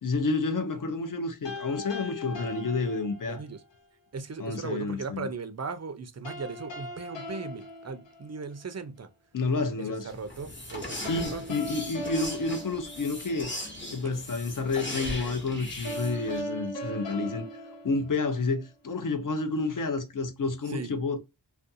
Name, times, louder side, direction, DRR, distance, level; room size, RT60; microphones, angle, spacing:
voice 1, 0.0-3.4 4.4-5.3 9.3-10.1 11.1-13.5 13.9-17.5 17.8-21.2, left 3 dB, 50° left, 0.6 m, -30 dB
sound 1, 1.4-3.6 6.2-8.7 11.0-13.6 15.8-18.7, left 1 dB, 85° left, 0.8 m, -39 dB
voice 2, 3.3-3.6 4.1-9.1 9.8-11.4 20.7-20.9, right 4 dB, 40° right, 0.4 m, -38 dB
sound 2, 10.1-16.4, left 1 dB, 25° left, 0.9 m, -39 dB
2.5 x 2.2 x 2.6 m
wide cardioid pair, 70°, 42 cm